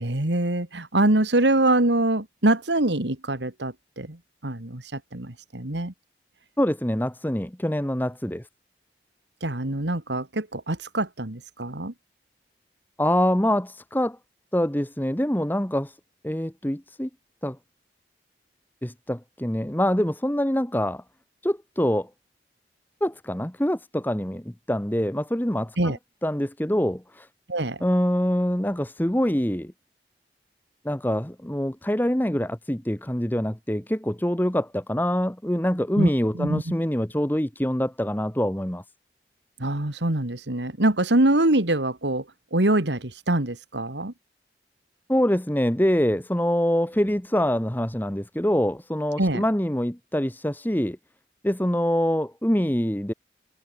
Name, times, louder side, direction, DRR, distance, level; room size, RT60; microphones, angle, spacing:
voice 1, 0.0-5.9 9.4-11.9 25.8-26.0 27.5-27.9 36.0-36.6 39.6-44.1 49.2-49.4, right 1 dB, 85° right, 2.5 m, -24 dB
voice 2, 6.6-8.4 13.0-14.2 14.5-15.9 16.2-17.1 17.4-17.6 18.8-21.0 21.4-22.1 23.0-25.8 26.2-27.3 27.8-29.7 30.8-38.8 45.1-51.0 51.4-53.1, equal, 10° left, 1.3 m, -25 dB
head